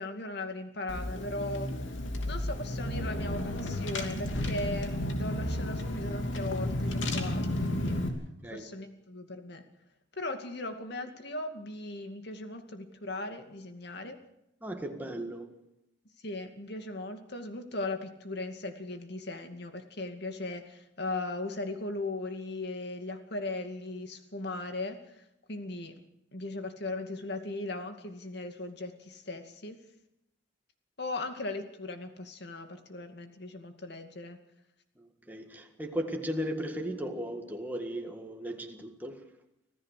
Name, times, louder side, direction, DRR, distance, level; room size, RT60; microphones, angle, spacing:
voice 1, 0.0-1.7 2.3-7.9 8.5-9.6 10.2-14.2 16.2-25.0 25.5-26.0 26.3-29.8 31.0-34.4, left 2 dB, 60° left, 2.4 m, -38 dB
Car / Engine, 0.9-8.1, left 1 dB, 80° left, 2.8 m, -32 dB
voice 2, 8.4-8.8 14.6-15.6 35.0-39.3, equal, 10° right, 1.8 m, -36 dB
25.5 x 16.0 x 6.7 m
head